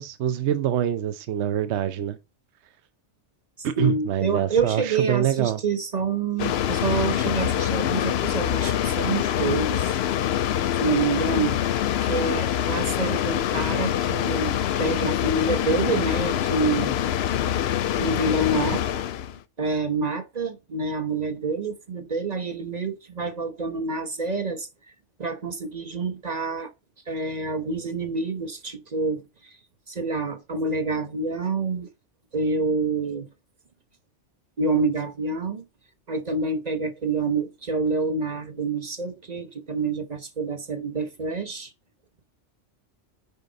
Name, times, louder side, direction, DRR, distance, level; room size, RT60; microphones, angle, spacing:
voice 1, 0.0-2.2 3.6-5.6, right 11 dB, 70° right, 1.0 m, -25 dB
voice 2, 3.6-10.0 10.8-11.6 12.0-14.5 14.8-16.9 18.0-18.8 19.6-24.7 25.2-26.7 27.1-29.5 29.9-31.9 32.3-33.3 34.6-35.6 36.1-41.7, right 3 dB, 35° right, 1.1 m, -27 dB
sound 1, 6.4-19.4, left 10 dB, 65° left, 0.8 m, -25 dB
9.7 x 5.1 x 4.0 m
omnidirectional pair, 1.2 m